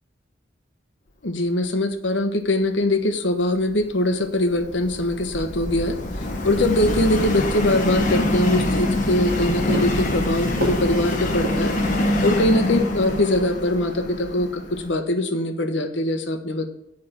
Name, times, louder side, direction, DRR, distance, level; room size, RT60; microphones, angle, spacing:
voice 1, 1.2-6.0 6.4-11.8 12.2-16.7, left 1 dB, 70° left, 7 dB, 1.3 m, -22 dB
Subway metro underground, 3.6-14.9, left 1 dB, 40° left, 1.6 m, -25 dB
Walk footsteps, 8.7-12.5, equal, 50° right, 2.5 m, -33 dB
7.5 x 5.9 x 7.4 m, 0.80 s
head